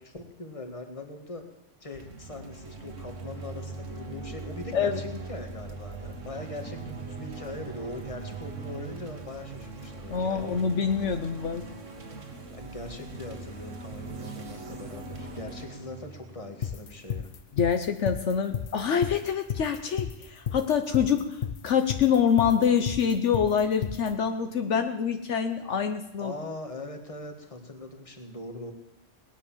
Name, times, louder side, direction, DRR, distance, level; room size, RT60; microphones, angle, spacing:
voice 1, 0.0-1.4 1.8-10.6 12.5-17.3 26.2-28.7, left 2 dB, 25° left, 5 dB, 1.9 m, -41 dB
sound 1, 1.9-17.3, right 3 dB, 85° right, 2.0 m, -41 dB
voice 2, 4.7-5.2 10.1-11.6 17.6-21.4 21.6-26.3, left 7 dB, 70° left, 7 dB, 1.2 m, -26 dB
sound 2, 16.6-24.1, left 8 dB, 55° left, 0.8 m, -32 dB
18.5 x 9.8 x 7.3 m, 0.91 s
omnidirectional pair, 1.3 m